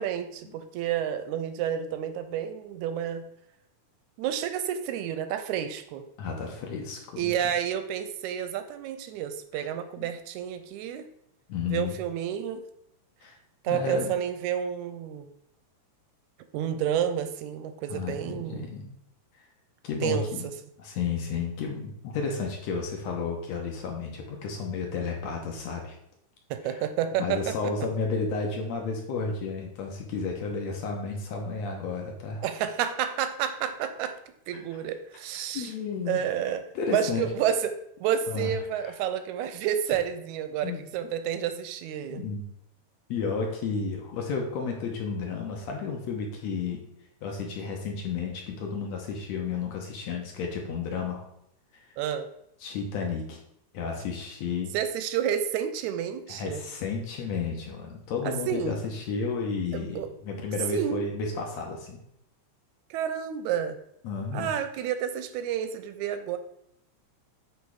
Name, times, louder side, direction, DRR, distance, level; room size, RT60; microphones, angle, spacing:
voice 1, 0.0-3.3 4.2-6.0 7.2-11.1 11.7-12.6 13.6-15.3 16.5-18.7 20.0-20.5 26.5-27.7 32.4-34.2 34.5-35.7 36.1-36.6 36.9-37.8 38.0-42.3 52.0-52.3 54.7-56.6 58.2-58.8 59.7-60.1 60.7-61.1 62.9-63.8 64.3-66.4, right 9 dB, 80° right, 10 dB, 1.8 m, -30 dB
voice 2, 6.2-7.5 9.6-9.7 10.0-10.1 11.5-12.0 13.2-13.4 13.7-14.1 17.9-18.9 19.8-20.5 20.8-25.9 26.6-26.8 27.2-32.5 35.5-36.3 36.8-37.3 38.3-38.5 38.8-38.9 40.6-40.8 42.1-42.4 43.1-46.8 47.2-51.3 52.6-53.4 53.7-54.8 56.3-62.0 64.0-64.5, left 5 dB, 70° left, 1 dB, 2.0 m, -32 dB
8.5 x 3.2 x 4.7 m, 0.75 s
omnidirectional pair, 3.7 m